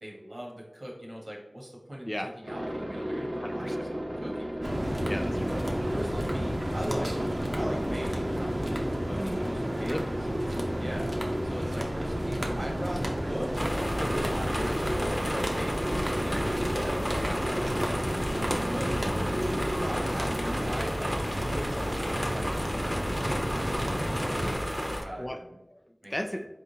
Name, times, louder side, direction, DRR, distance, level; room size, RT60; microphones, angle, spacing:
voice 1, 0.0-5.0 5.5-5.6 5.9-7.1 7.6-9.9 10.3-11.1 11.4-13.5 14.0-18.3 18.7-18.9 19.6-24.6 25.0-25.6 26.0-26.1, equal, 55° right, -2 dB, 1.3 m, -40 dB
Aircraft, 2.4-20.7, equal, 70° right, 1.0 m, -34 dB
voice 2, 3.4-3.8 5.1-5.6 9.1-10.1 17.2-17.4 18.7-19.3 25.2-25.4 25.7-26.5, equal, 20° left, 6 dB, 0.3 m, -37 dB
sound 1, 4.6-24.5, equal, 30° right, 0.7 m, -33 dB
sound 2, 13.5-25.0, equal, ahead, 0.8 m, -32 dB
4.3 x 3.7 x 2.8 m, 0.92 s
wide cardioid pair, 55°, 0 cm